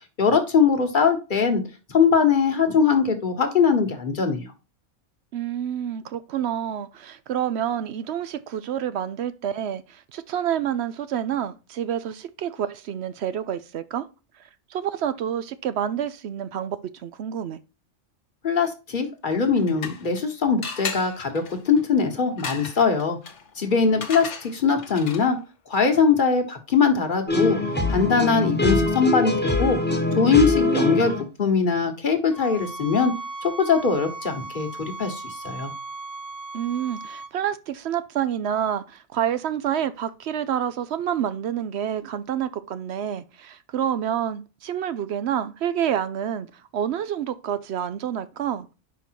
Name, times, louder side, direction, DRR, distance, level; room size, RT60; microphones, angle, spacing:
voice 1, 0.2-1.6 1.9-4.5 18.4-23.2 23.6-25.4 25.7-27.6 27.9-29.8 30.1-31.1 31.4-33.1 33.4-35.7, left 5 dB, 45° left, 1.3 m, -21 dB
voice 2, 5.3-14.1 14.7-17.6 30.5-31.0 36.5-46.5 46.7-48.7, right 9 dB, 65° right, 0.8 m, -28 dB
sound 1, 19.3-20.2 20.6-25.5, left 5 dB, 70° left, 1.3 m, -36 dB
sound 2, 27.3-31.2, left 2 dB, 10° left, 1.0 m, -23 dB
sound 3, 32.3-37.3, right 3 dB, 35° right, 0.8 m, -37 dB
5.2 x 4.9 x 4.5 m
omnidirectional pair, 1.3 m